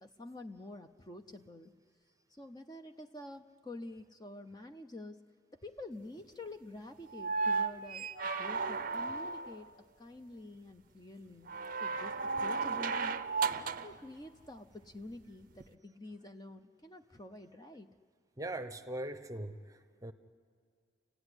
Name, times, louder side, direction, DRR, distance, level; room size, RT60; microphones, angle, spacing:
voice 1, 0.0-1.7 2.3-5.2 5.5-9.7 10.0-11.5 11.8-17.9, left 2 dB, 20° left, 7 dB, 0.6 m, -48 dB
sound 1, 7.1-9.6 11.5-14.0 15.6-15.7, right 4 dB, 45° right, 0.6 m, -34 dB
voice 2, 18.4-20.1, right 1 dB, 15° right, 9 dB, 0.8 m, -41 dB
29.5 x 15.0 x 9.8 m, 2.2 s
head